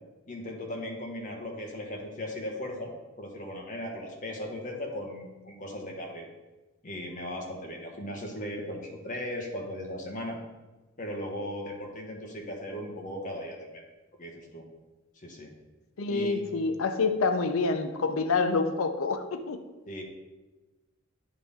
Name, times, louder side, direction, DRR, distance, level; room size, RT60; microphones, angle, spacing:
voice 1, 0.3-6.3 6.8-10.4 11.0-13.8 14.2-14.6 15.2-15.5 16.1-16.5 19.9-20.0, left 1 dB, 40° left, 0 dB, 1.2 m, -37 dB
voice 2, 16.0-19.6, left 4 dB, 80° left, 7 dB, 0.6 m, -27 dB
9.3 x 4.0 x 3.6 m, 1.1 s
head